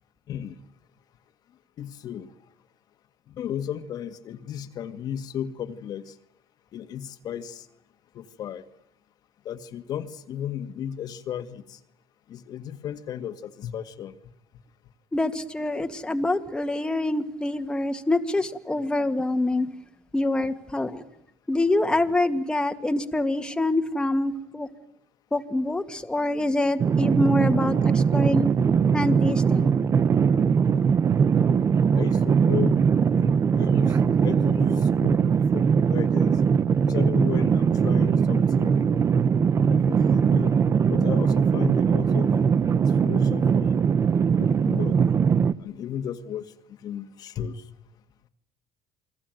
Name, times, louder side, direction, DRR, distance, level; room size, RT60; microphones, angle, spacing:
voice 1, 1.8-2.3 3.3-6.1 6.7-7.7 8.2-8.6 9.5-11.8 12.3-14.2 32.0-32.8 33.2-35.6 35.9-36.4 36.8-38.8 39.7-40.6 40.9-42.3 42.8-43.8 44.4-45.0 45.6-46.4 46.8-47.6, left 9 dB, 55° left, 2.0 m, -34 dB
voice 2, 15.1-19.7 20.1-21.0 21.5-24.7 25.3-28.5 28.9-29.7, left 2 dB, 10° left, 2.1 m, -25 dB
sound 1, 26.8-45.5, right 6 dB, 35° right, 1.2 m, -21 dB
29.0 x 22.0 x 9.3 m
supercardioid pair, 100°, 8 cm